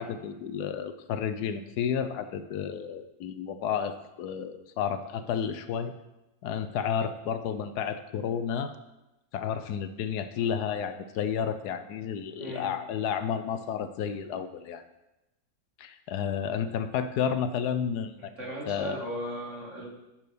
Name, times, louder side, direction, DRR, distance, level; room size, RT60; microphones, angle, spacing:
voice 1, 0.0-5.9 6.4-8.8 9.3-14.8 15.8-18.3 18.7-19.0, left 8 dB, 80° left, 10 dB, 1.2 m, -31 dB
voice 2, 12.4-12.7 18.2-19.9, equal, 45° right, -4 dB, 2.5 m, -37 dB
10.5 x 4.5 x 6.7 m, 0.97 s
omnidirectional pair, 1.7 m